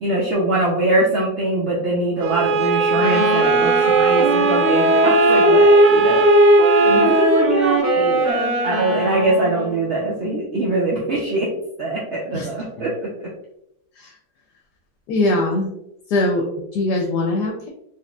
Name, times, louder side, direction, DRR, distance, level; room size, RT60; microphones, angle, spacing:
voice 1, 0.0-6.3 6.9-11.5 11.8-13.3, right 2 dB, 70° right, -4 dB, 0.6 m, -23 dB
Bowed string instrument, 2.2-7.4, right 3 dB, 90° right, 1.3 m, -20 dB
Wind instrument woodwind instrument, 3.0-9.9, right 1 dB, 45° right, 1.0 m, -17 dB
voice 2, 12.3-12.9 14.0-14.2 15.1-15.7 16.1-17.7, left 2 dB, 70° left, 1 dB, 1.1 m, -22 dB
4.2 x 2.8 x 2.2 m, 0.79 s
omnidirectional pair, 1.9 m